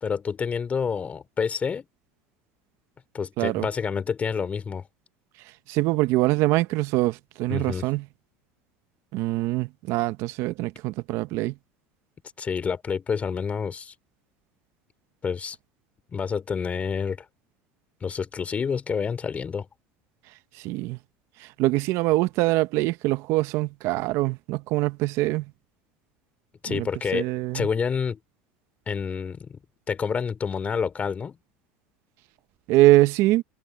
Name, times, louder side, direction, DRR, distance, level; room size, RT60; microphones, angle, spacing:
voice 1, 0.0-1.8 3.1-4.9 7.5-7.8 12.4-13.9 15.2-15.6 16.1-17.3 18.0-19.7 26.6-27.3 27.5-28.2 28.9-29.6 29.9-31.4, left 6 dB, 25° left, 2.8 m, -28 dB
voice 2, 5.7-8.0 9.1-11.5 20.6-21.0 21.4-25.5 26.7-26.9 27.1-27.7 32.7-33.4, right 18 dB, 65° right, 0.9 m, -23 dB
supercardioid pair, 110°, 5 cm